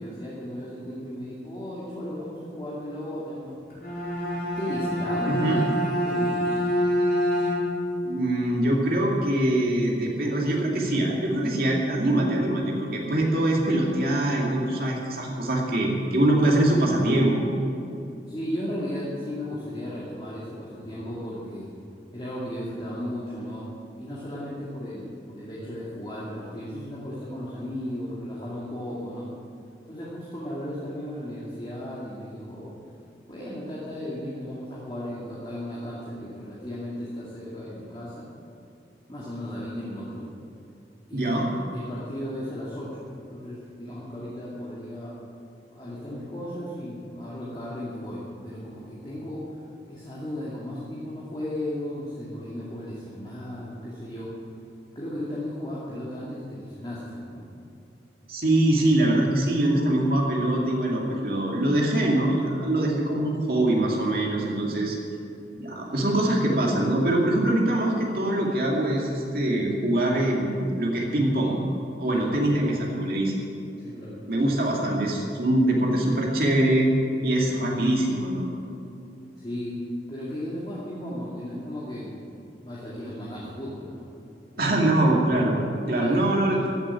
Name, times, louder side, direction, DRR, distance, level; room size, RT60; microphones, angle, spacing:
voice 1, 0.0-3.6 4.4-5.7 6.0-6.6 18.3-21.7 22.1-23.7 24.0-29.3 29.9-32.7 33.3-38.3 39.1-40.3 41.1-45.1 45.7-54.4 54.9-57.4 72.1-72.4 73.8-74.2 79.4-79.8 80.1-82.2 82.6-84.8 85.9-86.3, left 1 dB, 25° left, -8 dB, 2.4 m, -35 dB
Bowed string instrument, 3.7-8.0, equal, 55° left, 4.4 m, -26 dB
voice 2, 5.3-5.6 8.0-17.4 41.1-41.5 58.3-65.0 65.6-71.6 72.0-73.3 74.3-76.9 77.2-78.5 84.6-85.6 85.9-86.7, right 1 dB, 55° right, -2 dB, 2.4 m, -23 dB
15.5 x 8.1 x 9.9 m, 2.7 s
head